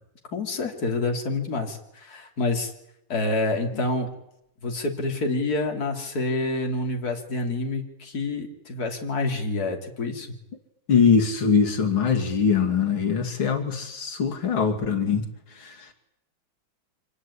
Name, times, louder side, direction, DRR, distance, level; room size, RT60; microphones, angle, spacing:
voice 1, 0.3-2.7 3.1-4.1 4.6-10.3, left 2 dB, 50° left, 2 dB, 3.5 m, -27 dB
voice 2, 10.9-15.2 15.6-15.9, left 6 dB, 90° left, 3 dB, 3.3 m, -22 dB
26.0 x 19.0 x 10.0 m, 0.81 s
omnidirectional pair, 2.2 m